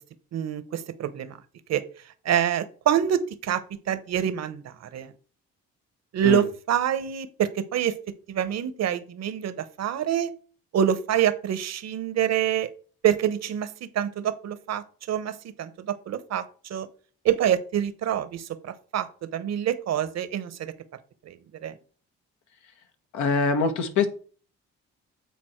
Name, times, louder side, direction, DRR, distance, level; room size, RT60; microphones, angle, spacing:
voice 1, 0.3-1.4 1.7-1.8 2.2-5.1 6.1-10.3 10.7-12.7 13.0-16.9 17.2-20.7 21.2-21.4 21.6-21.7, right 9 dB, 60° right, 14 dB, 1.0 m, -26 dB
voice 2, 23.1-24.1, left 5 dB, 75° left, 7 dB, 1.3 m, -23 dB
8.4 x 4.1 x 4.5 m, 0.41 s
supercardioid pair, 70°, 30 cm